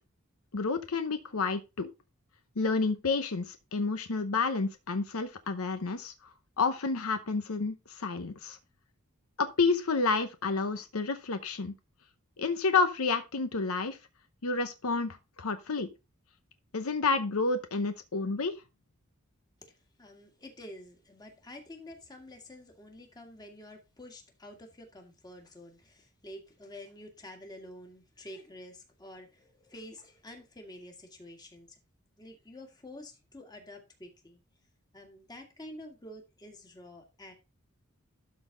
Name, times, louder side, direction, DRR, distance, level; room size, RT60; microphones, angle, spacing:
voice 1, 0.5-1.9 2.6-6.1 6.6-8.6 9.4-11.7 12.4-14.0 14.4-15.9 16.7-18.6, left 4 dB, 75° left, 0.8 m, -30 dB
voice 2, 19.6-31.8 32.2-34.4 34.9-37.3, left 1 dB, 20° left, 1.9 m, -49 dB
12.5 x 4.1 x 3.8 m
head